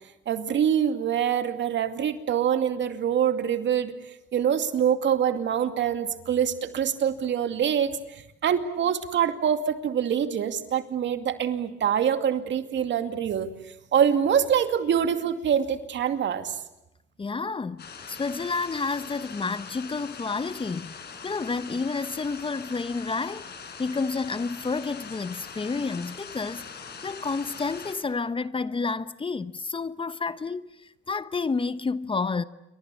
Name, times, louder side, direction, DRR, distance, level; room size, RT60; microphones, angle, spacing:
voice 1, 0.3-3.9 4.3-13.5 13.9-16.6, right 8 dB, 65° right, 2.5 m, -25 dB
voice 2, 17.2-21.0 21.2-23.5 23.8-30.7 31.1-32.4, left 4 dB, 25° left, 1.0 m, -30 dB
sound 1, 17.8-28.0, left 6 dB, 55° left, 5.1 m, -42 dB
29.0 x 24.5 x 8.4 m
cardioid pair, 90°, 20 cm